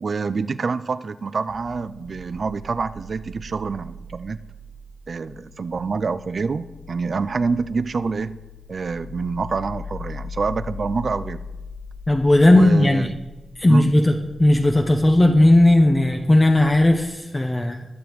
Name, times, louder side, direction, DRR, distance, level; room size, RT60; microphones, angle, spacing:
voice 1, 0.0-4.4 5.1-8.4 8.7-11.4 12.5-13.1 13.7-13.9, right 4 dB, 65° right, 13 dB, 0.4 m, -26 dB
sound 1, 1.5-17.2, left 3 dB, 80° left, 0.8 m, -40 dB
voice 2, 12.1-13.1 13.6-14.1 14.4-17.9, left 1 dB, 25° left, 2 dB, 0.8 m, -16 dB
19.5 x 6.9 x 3.1 m, 1.1 s
cardioid pair, 60°, 0 cm